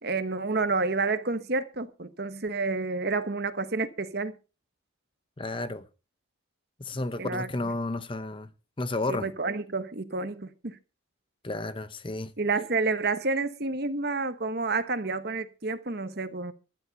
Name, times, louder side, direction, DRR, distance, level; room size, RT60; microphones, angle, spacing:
voice 1, 0.0-4.4 7.2-7.5 9.1-10.8 12.4-16.5, right 3 dB, 50° right, 1.1 m, -29 dB
voice 2, 5.4-5.8 6.8-8.5 8.8-9.3 11.4-12.3, left 2 dB, 25° left, 0.8 m, -32 dB
15.0 x 12.5 x 4.1 m
head